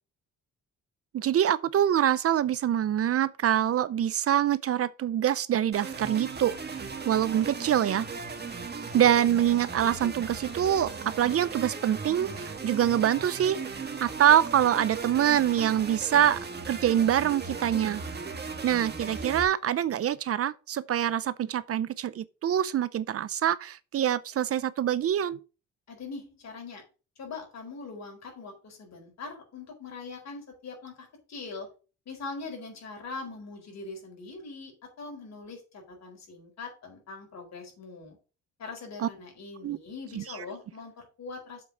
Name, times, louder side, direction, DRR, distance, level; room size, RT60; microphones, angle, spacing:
voice 1, 1.1-6.8 7.1-8.1 8.9-16.4 16.7-18.0 18.6-25.4 39.0-39.1 39.6-39.8 40.1-40.2, right 10 dB, 50° right, 0.6 m, -25 dB
sound 1, 5.7-19.4, right 4 dB, 35° right, 1.8 m, -37 dB
voice 2, 25.9-26.8 27.2-31.7 32.1-38.2 38.6-41.6, left 4 dB, 60° left, 4.4 m, -42 dB
7.3 x 4.6 x 7.0 m
cardioid pair, 90°, 30 cm